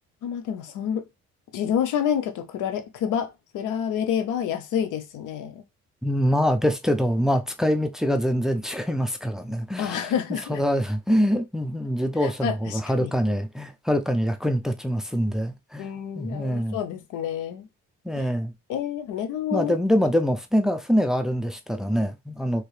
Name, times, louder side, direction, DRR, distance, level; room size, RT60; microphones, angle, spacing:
voice 1, 0.2-1.1 1.5-5.6 9.8-10.6 12.2-13.1 15.8-17.7 18.2-18.3 18.7-19.7, left 8 dB, 85° left, 0.7 m, -28 dB
voice 2, 6.0-10.1 10.5-15.9 16.2-16.8 18.0-18.5 19.5-22.7, equal, ahead, 0.4 m, -24 dB
2.9 x 2.7 x 3.2 m
cardioid pair, 90°, 30 cm